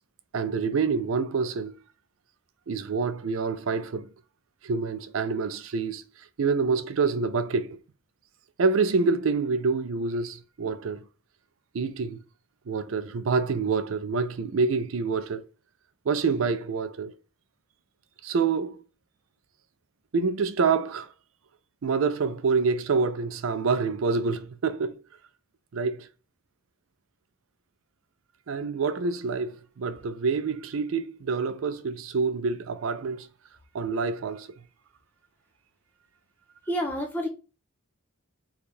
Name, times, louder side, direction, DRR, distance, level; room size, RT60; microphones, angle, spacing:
voice 1, 0.3-1.8 2.7-4.1 4.6-6.0 6.4-7.8 8.6-11.0 11.7-12.2 12.7-15.4 16.1-17.1 18.2-18.8 20.1-21.1 21.8-25.0 25.7-26.1 28.5-33.3 33.7-34.5, right 4 dB, 70° right, 0.4 m, -27 dB
voice 2, 36.7-37.3, equal, 10° left, 0.8 m, -28 dB
3.4 x 2.3 x 4.2 m
head